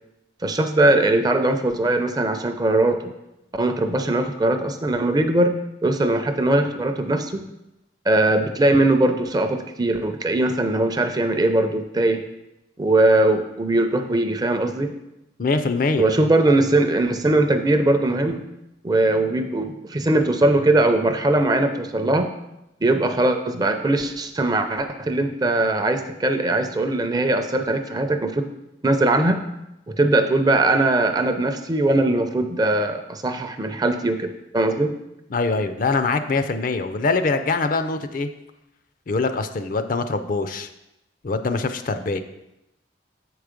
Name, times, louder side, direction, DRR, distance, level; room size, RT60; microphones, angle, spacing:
voice 1, 0.4-3.0 3.5-5.5 5.8-7.4 8.1-12.2 12.8-14.9 16.0-18.4 18.8-22.3 22.8-28.5 28.8-29.4 30.0-34.9, right 2 dB, 20° right, 7 dB, 0.5 m, -20 dB
voice 2, 15.4-16.1 35.3-38.3 39.1-40.7 41.2-42.2, left 3 dB, 50° left, 10 dB, 0.5 m, -23 dB
7.2 x 4.7 x 5.1 m, 0.90 s
head